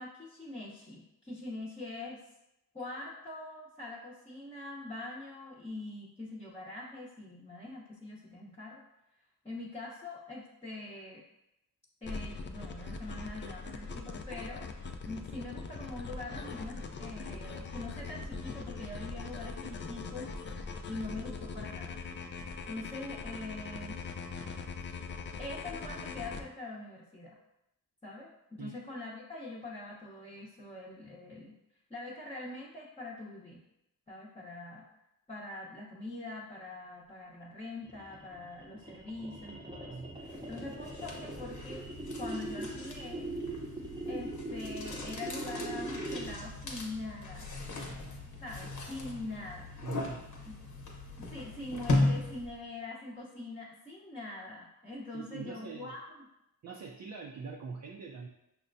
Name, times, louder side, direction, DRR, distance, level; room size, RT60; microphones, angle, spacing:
voice 1, 0.0-2.2 2.7-8.8 9.4-11.3 12.0-14.7 15.0-20.3 20.9-22.0 22.7-24.0 25.4-27.4 28.0-31.6 31.9-33.6 34.1-34.9 35.3-41.8 42.2-43.3 44.1-47.5 48.4-49.7 50.4-50.5 51.2-56.3, left 2 dB, 15° left, -6 dB, 0.8 m, -43 dB
sound 1, 12.0-26.4, left 4 dB, 35° left, 0.4 m, -41 dB
sound 2, 37.8-46.5, right 2 dB, 15° right, 0.8 m, -41 dB
sound 3, 40.3-52.7, left 2 dB, 55° left, 0.9 m, -37 dB
voice 2, 49.8-50.2 55.1-55.9 56.6-58.3, right 4 dB, 55° right, 1 dB, 0.5 m, -42 dB
5.7 x 2.2 x 2.6 m, 0.87 s
cardioid pair, 55°, 35 cm